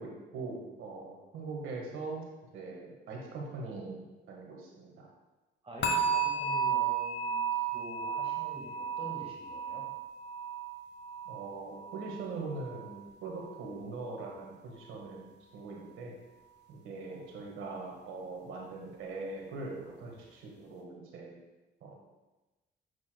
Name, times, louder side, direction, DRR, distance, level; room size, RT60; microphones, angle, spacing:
voice 1, 0.0-2.3 2.5-5.1 11.2-16.2 16.7-21.4 21.8-21.9, right 3 dB, 85° right, -1 dB, 1.5 m, -42 dB
voice 2, 5.6-9.8 17.1-17.3, right 1 dB, 30° right, -3 dB, 1.7 m, -46 dB
sound 1, 5.8-12.9 13.2-13.6 14.1-14.2, right 6 dB, 60° left, 1.1 m, -34 dB
8.2 x 6.3 x 2.3 m, 1.1 s
cardioid pair, 90°, 20 cm